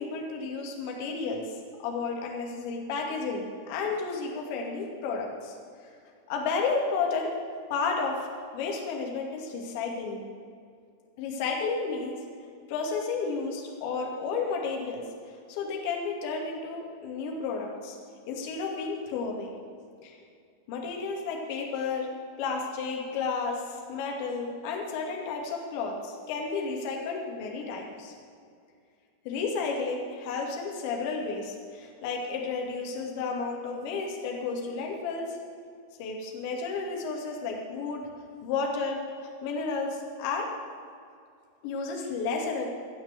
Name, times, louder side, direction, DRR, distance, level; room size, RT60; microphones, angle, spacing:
voice 1, 0.0-1.5 1.8-5.6 6.3-7.4 7.7-8.3 8.5-10.2 11.2-12.2 12.7-18.0 18.3-19.5 20.0-20.2 20.7-22.1 22.4-28.1 29.2-35.4 36.0-38.0 38.4-39.0 39.4-40.5 41.6-42.7, left 4 dB, 45° left, 0 dB, 2.3 m, -32 dB
16.0 x 5.9 x 8.1 m, 2.3 s
figure-of-eight pair, 90°, 0 cm